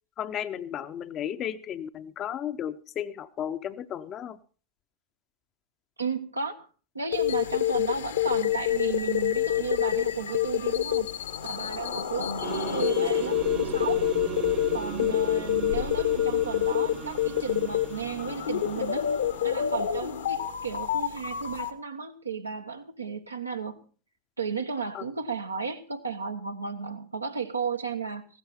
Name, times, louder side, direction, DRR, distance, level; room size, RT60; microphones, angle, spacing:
voice 1, 0.2-4.4 15.0-15.1 24.9-25.0, left 10 dB, 30° left, 11 dB, 0.8 m, -34 dB
voice 2, 6.0-6.7 6.9-11.1 11.4-14.1 14.7-19.1 19.4-23.8 24.4-28.3, right 5 dB, 80° right, 5 dB, 1.3 m, -34 dB
sound 1, 7.1-21.7, left 12 dB, 65° left, 1.3 m, -27 dB
sound 2, 12.4-19.6, right 12 dB, 30° right, 0.6 m, -37 dB
sound 3, 13.3-18.4, left 3 dB, 85° left, 1.7 m, -43 dB
16.0 x 12.5 x 4.2 m, 0.37 s
figure-of-eight pair, 90°, 0 cm